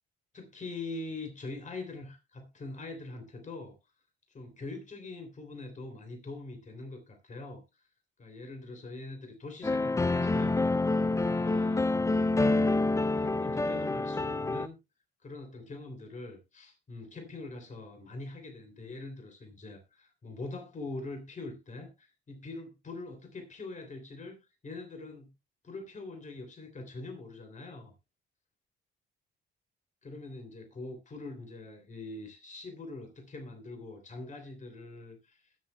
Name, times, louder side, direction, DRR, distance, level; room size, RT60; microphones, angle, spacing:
voice 1, 0.3-3.8 4.3-7.9 8.2-10.9 11.2-12.1 13.2-14.8 15.2-25.3 25.6-27.9 30.0-35.5, left 2 dB, 40° left, 3.3 m, -43 dB
sound 1, 9.6-14.7, left 2 dB, 15° left, 0.4 m, -27 dB
21.0 x 7.3 x 2.3 m
cardioid pair, 90°, 20 cm